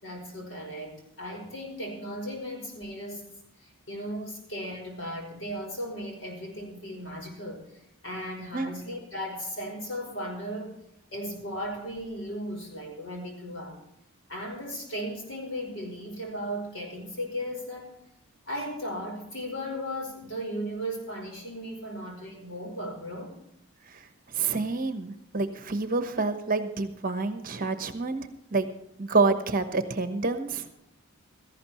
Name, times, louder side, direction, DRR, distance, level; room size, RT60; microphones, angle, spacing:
voice 1, 0.0-3.3 3.6-10.7 11.1-13.8 14.3-18.0 18.4-23.4, equal, 60° left, 2 dB, 4.9 m, -36 dB
voice 2, 23.9-28.7 29.0-30.7, right 3 dB, 40° right, 8 dB, 1.1 m, -28 dB
17.0 x 14.5 x 3.1 m, 0.77 s
head